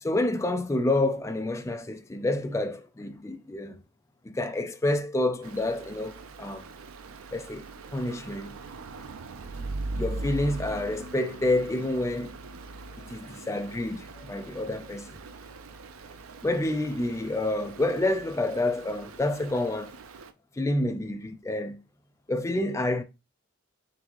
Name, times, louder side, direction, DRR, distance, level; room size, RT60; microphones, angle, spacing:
voice 1, 0.0-3.8 4.2-6.7 7.3-7.7 7.9-8.5 9.9-12.4 13.0-15.1 16.4-19.9 20.6-21.8 22.3-23.0, left 2 dB, 15° left, 0.3 m, -28 dB
Stream, 5.4-20.3, right 2 dB, 80° right, 0.5 m, -41 dB
3.9 x 3.5 x 2.9 m
head